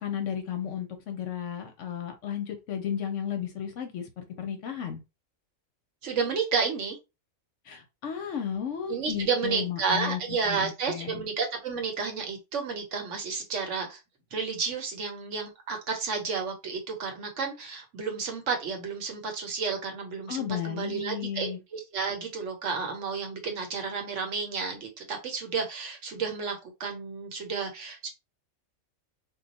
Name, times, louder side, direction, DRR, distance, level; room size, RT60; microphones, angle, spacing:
voice 1, 0.0-5.0 7.7-11.2 20.3-21.6, left 8 dB, 65° left, 5 dB, 0.8 m, -34 dB
voice 2, 6.0-7.0 8.9-14.0 14.3-28.1, right 5 dB, 65° right, 3 dB, 1.0 m, -31 dB
2.3 x 2.2 x 3.9 m, 0.25 s
omnidirectional pair, 1.5 m